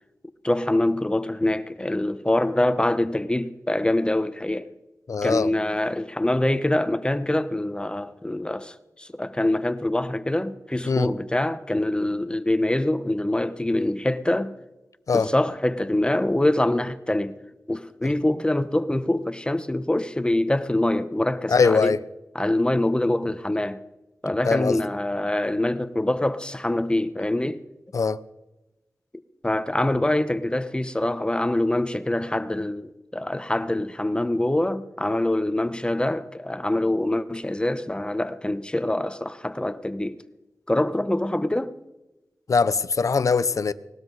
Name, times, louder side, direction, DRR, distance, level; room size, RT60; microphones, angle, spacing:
voice 1, 0.4-4.7 5.2-14.5 15.1-17.4 17.7-22.0 22.3-23.8 24.2-27.6 29.4-40.2 40.7-41.7, left 1 dB, 15° left, 0.9 m, -24 dB
voice 2, 5.1-5.5 10.9-11.1 15.1-15.3 18.0-18.1 21.5-22.0 24.4-24.8 27.9-28.2 42.5-43.7, left 5 dB, 65° left, 0.6 m, -21 dB
19.0 x 12.5 x 4.0 m
wide cardioid pair, 65°, 6 cm